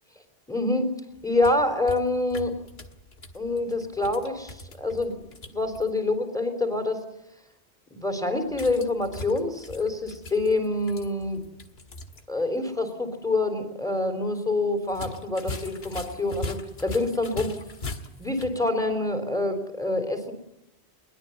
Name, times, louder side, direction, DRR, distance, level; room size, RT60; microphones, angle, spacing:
voice 1, 0.5-0.9 1.2-2.6 3.3-7.0 7.9-11.4 12.3-17.6 18.2-20.3, left 2 dB, 5° left, 7 dB, 3.9 m, -26 dB
sound 1, 1.2-5.9 8.5-12.2 12.5-12.6 14.9-18.6, left 2 dB, 70° left, 2.1 m, -40 dB
22.5 x 20.5 x 9.5 m, 0.89 s
omnidirectional pair, 1.1 m